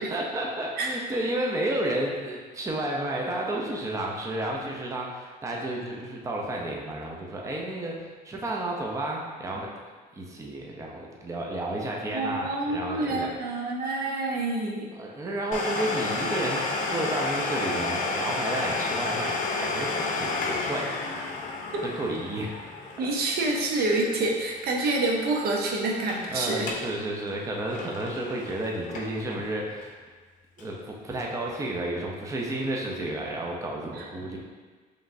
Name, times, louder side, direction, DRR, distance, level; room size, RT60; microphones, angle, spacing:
voice 1, 0.1-9.7 10.1-13.3 14.9-16.6 16.9-20.9 21.8-22.5 23.0-23.1 26.3-30.0 30.6-34.4, right 1 dB, 20° right, -1 dB, 0.6 m, -31 dB
voice 2, 12.1-14.9 23.0-26.7 34.0-34.1, right 2 dB, 65° right, -1 dB, 0.7 m, -27 dB
Domestic sounds home sounds, 15.5-25.0 25.2-25.3 25.9-26.2 26.6-26.9 27.3-29.3 29.8-29.9 30.6-30.7, left 3 dB, 50° left, 0.6 m, -31 dB
5.0 x 3.1 x 2.6 m, 1.4 s
cardioid pair, 110°, 17 cm